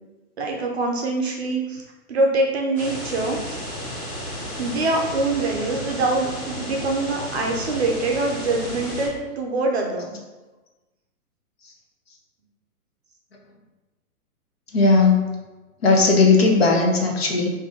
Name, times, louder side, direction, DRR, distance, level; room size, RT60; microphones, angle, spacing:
voice 1, 0.4-3.6 4.6-10.1, right 2 dB, 45° right, 0 dB, 0.5 m, -24 dB
sound 1, 2.7-9.1, equal, 5° left, 0.9 m, -33 dB
voice 2, 14.7-15.2 15.8-17.5, left 3 dB, 40° left, 0 dB, 0.6 m, -17 dB
3.5 x 2.7 x 3.6 m, 1.1 s
hypercardioid pair, 170°, 46 cm